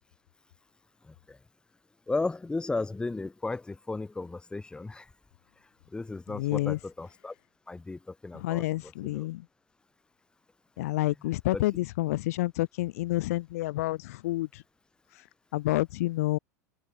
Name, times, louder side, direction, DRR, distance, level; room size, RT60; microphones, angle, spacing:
voice 1, 1.1-1.4 2.1-5.1 5.9-7.3 7.7-9.3 11.5-11.6, left 3 dB, 10° left, 1.1 m, -35 dB
voice 2, 6.3-6.8 8.3-9.4 10.8-14.6 15.5-16.4, left 17 dB, 65° left, 0.9 m, -29 dB
open air
figure-of-eight pair, 85°, 9 cm